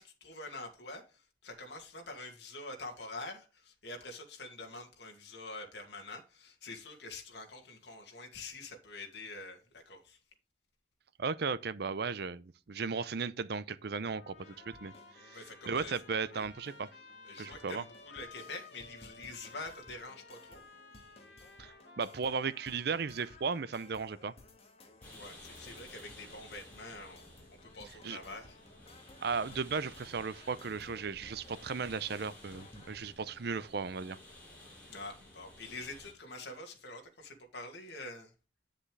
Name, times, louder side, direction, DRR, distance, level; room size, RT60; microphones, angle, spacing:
voice 1, 0.0-10.2 15.3-15.9 16.3-16.4 17.2-20.6 25.1-27.2 27.5-28.6 34.9-38.3, left 2 dB, 70° left, 2.3 m, -46 dB
voice 2, 11.2-14.9 15.2-15.4 15.7-16.9 17.4-17.8 21.6-24.3 28.0-28.2 29.2-34.2, right 5 dB, 60° right, 0.6 m, -36 dB
Trumpet, 13.9-23.6, left 3 dB, 90° left, 2.4 m, -55 dB
sound 1, 14.4-33.0, left 2 dB, 35° left, 1.8 m, -58 dB
sound 2, 25.0-36.1, left 1 dB, 10° left, 5.6 m, -54 dB
8.9 x 7.4 x 3.3 m
head